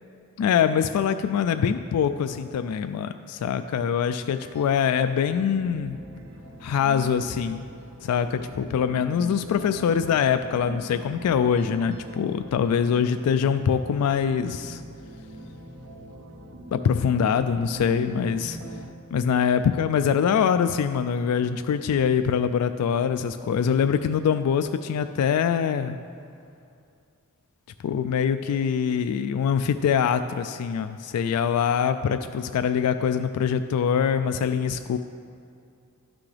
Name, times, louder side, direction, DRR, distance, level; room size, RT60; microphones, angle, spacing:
voice 1, 0.4-6.0 6.6-7.6 8.0-14.8 16.7-18.6 19.1-26.0 27.8-35.0, left 7 dB, 90° left, 12 dB, 0.3 m, -24 dB
sound 1, 4.3-18.8, right 1 dB, 65° right, 0.7 m, -42 dB
11.5 x 6.0 x 3.3 m, 2.4 s
head